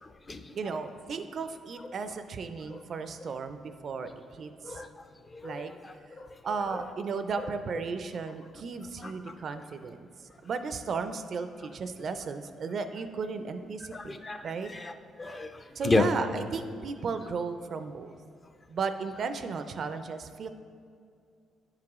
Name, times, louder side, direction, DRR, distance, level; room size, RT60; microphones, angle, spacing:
voice 1, 0.0-0.6 2.7-2.8 4.6-4.9 5.3-6.8 7.4-7.5 9.0-9.3 13.9-14.9 15.2-16.1, left 3 dB, 30° left, 8 dB, 0.4 m, -33 dB
voice 2, 0.6-4.8 5.4-5.7 6.4-10.1 10.4-14.7 15.8-18.2 18.7-20.5, right 5 dB, 55° right, 9 dB, 0.4 m, -35 dB
9.9 x 4.9 x 3.5 m, 2.3 s
cardioid pair, 90°, 0 cm